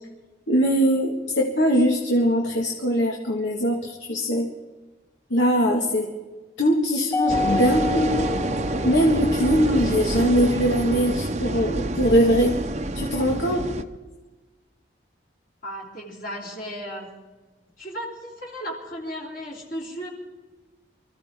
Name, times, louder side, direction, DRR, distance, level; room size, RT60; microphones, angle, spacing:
voice 1, 0.5-4.5 5.3-6.1 6.6-8.2 8.8-12.6 12.9-13.7, equal, 85° left, 0 dB, 1.9 m, -21 dB
Mallet percussion, 7.1-9.6, left 3 dB, 15° left, 0.7 m, -29 dB
sound 1, 7.3-13.8, right 1 dB, 35° right, 0.7 m, -27 dB
voice 2, 15.6-17.1 17.8-20.1, equal, 45° left, -3 dB, 3.1 m, -35 dB
25.0 x 15.0 x 3.7 m, 1.2 s
head